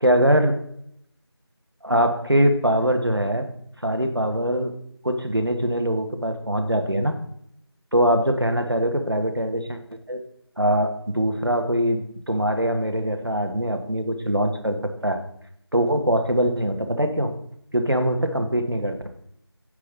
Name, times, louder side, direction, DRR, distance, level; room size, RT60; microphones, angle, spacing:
voice 1, 0.0-0.6 1.8-3.5 3.8-4.7 5.0-7.2 7.9-9.8 10.1-10.2 10.6-15.2 15.7-17.3 17.7-19.1, equal, 60° right, 6 dB, 1.5 m, -22 dB
9.7 x 7.6 x 4.0 m, 0.71 s
figure-of-eight pair, 180°, 14 cm